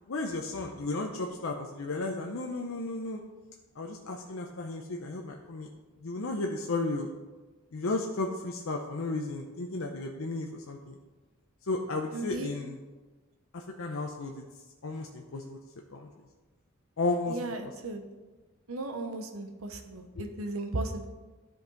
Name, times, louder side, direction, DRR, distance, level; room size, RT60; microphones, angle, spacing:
voice 1, 0.1-3.2 3.8-5.7 6.0-7.1 7.7-11.0 11.7-12.8 13.5-14.4 14.8-15.6 15.9-16.1 17.0-17.4, left 2 dB, 70° left, 2 dB, 0.7 m, -33 dB
voice 2, 12.1-12.5 17.3-18.0 18.7-21.1, right 2 dB, 90° right, 5 dB, 1.0 m, -36 dB
12.5 x 5.4 x 3.9 m, 1.3 s
head